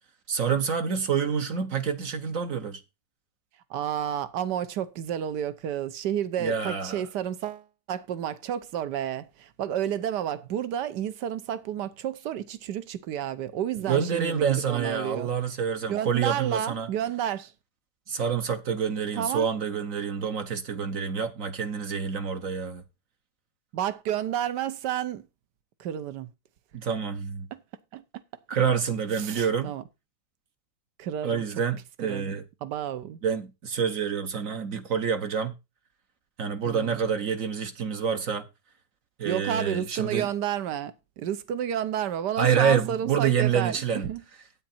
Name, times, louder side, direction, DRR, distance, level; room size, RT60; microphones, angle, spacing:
voice 1, 0.3-2.8 6.4-7.0 13.9-16.9 18.1-22.8 26.7-27.5 28.5-29.7 31.2-32.4 33.2-35.5 36.4-38.5 39.2-40.3 42.4-44.1, right 7 dB, 55° right, 1.2 m, -27 dB
voice 2, 3.7-15.3 15.9-17.5 19.2-19.5 23.7-25.3 25.8-26.3 27.5-27.6 27.9-28.0 29.2-29.8 31.0-31.4 32.0-33.2 36.6-37.0 39.2-44.2, right 10 dB, 70° right, 1.4 m, -31 dB
9.1 x 8.6 x 4.3 m
omnidirectional pair, 1.9 m